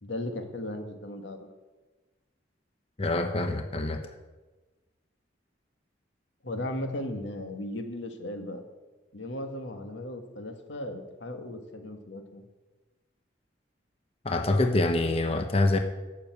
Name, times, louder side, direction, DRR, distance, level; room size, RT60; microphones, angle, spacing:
voice 1, 0.0-1.4 6.4-8.6 9.1-12.4, left 1 dB, 90° left, 5 dB, 1.6 m, -36 dB
voice 2, 3.0-4.1 14.2-15.8, left 2 dB, 35° left, 6 dB, 0.8 m, -25 dB
12.0 x 6.9 x 8.2 m, 1.2 s
head